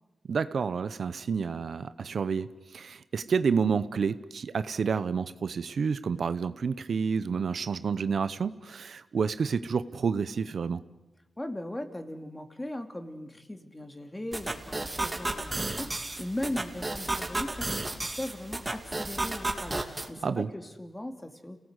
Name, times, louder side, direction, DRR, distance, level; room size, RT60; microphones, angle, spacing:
voice 1, 0.3-10.8 20.2-20.5, right 5 dB, 70° right, 13 dB, 0.8 m, -29 dB
voice 2, 11.4-21.6, left 1 dB, 20° left, 6 dB, 2.7 m, -38 dB
sound 1, 14.3-20.1, right 2 dB, 25° right, 2.8 m, -33 dB
29.0 x 18.5 x 8.2 m, 1.1 s
cardioid pair, 65°, 0 cm